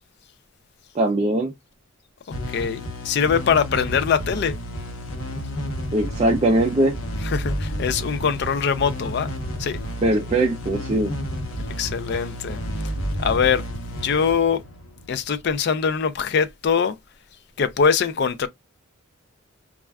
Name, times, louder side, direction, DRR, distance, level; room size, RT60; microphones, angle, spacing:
voice 1, 1.0-1.5 5.9-7.0 10.0-11.1, right 1 dB, 30° right, 0.3 m, -20 dB
sound 1, 2.3-15.6, equal, 80° left, 0.8 m, -31 dB
voice 2, 2.5-4.5 7.2-9.3 9.6-9.8 11.8-12.6 13.2-13.6 13.9-14.6 15.1-16.9 17.6-18.5, left 6 dB, 50° left, 0.3 m, -22 dB
2.4 x 2.2 x 3.3 m
head